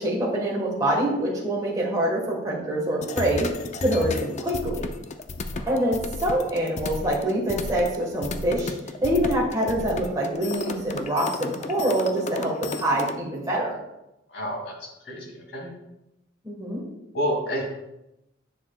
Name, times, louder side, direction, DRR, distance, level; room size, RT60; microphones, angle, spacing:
voice 1, 0.0-3.5 3.8-4.9 5.7-8.7 9.0-13.8 16.4-16.8, right 1 dB, 20° right, -4 dB, 1.3 m, -25 dB
sound 1, 3.0-13.1, left 3 dB, 40° left, 0.4 m, -33 dB
voice 2, 14.3-15.7 17.1-17.6, equal, 60° left, -1 dB, 2.2 m, -30 dB
10.0 x 6.5 x 2.3 m, 0.90 s
head